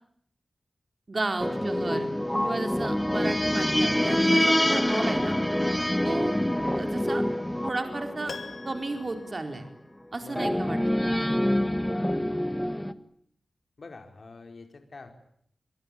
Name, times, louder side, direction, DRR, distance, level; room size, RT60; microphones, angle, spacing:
voice 1, 1.1-2.1 2.4-5.3 6.0-6.4 6.7-7.2 7.6-8.3 8.6-9.6 10.1-11.4, right 2 dB, 45° right, 5 dB, 4.4 m, -33 dB
sound 1, 1.4-9.3 10.4-12.9, left 1 dB, 10° left, 1.7 m, -26 dB
voice 2, 2.7-3.1 6.0-6.3 10.2-10.6 13.8-15.1, left 3 dB, 60° left, 5 dB, 5.1 m, -46 dB
Piano, 8.3-10.4 10.6-10.7, left 4 dB, 80° left, 2.5 m, -44 dB
29.5 x 23.0 x 8.7 m, 0.68 s
wide cardioid pair, 100°, 0 cm